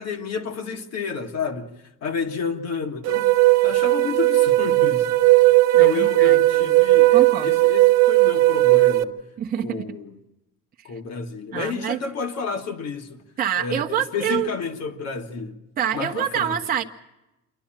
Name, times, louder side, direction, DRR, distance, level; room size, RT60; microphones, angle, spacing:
voice 1, 0.0-1.7 2.0-5.1 5.8-9.2 9.6-10.2 10.8-13.2 13.6-15.6 15.9-16.6, left 5 dB, 50° left, 1.9 m, -30 dB
sound 1, 3.0-9.0, right 19 dB, 55° right, 0.9 m, -17 dB
voice 2, 5.7-7.6 9.4-9.9 11.5-12.0 13.4-14.5 15.8-16.8, right 9 dB, 25° right, 0.9 m, -27 dB
27.5 x 11.5 x 8.9 m
cardioid pair, 175°, 33 cm